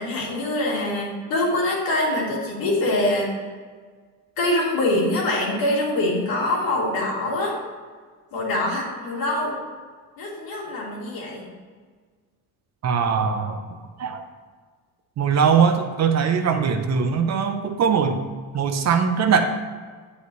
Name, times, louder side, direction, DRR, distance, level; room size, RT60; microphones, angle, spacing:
voice 1, 0.0-3.3 4.4-7.6 8.3-9.6 10.2-11.5, left 1 dB, 65° left, -3 dB, 2.7 m, -24 dB
voice 2, 12.8-14.2 15.2-18.2 18.5-19.4, right 6 dB, 45° right, 6 dB, 0.8 m, -21 dB
9.8 x 8.2 x 3.1 m, 1.5 s
cardioid pair, 145°, 38 cm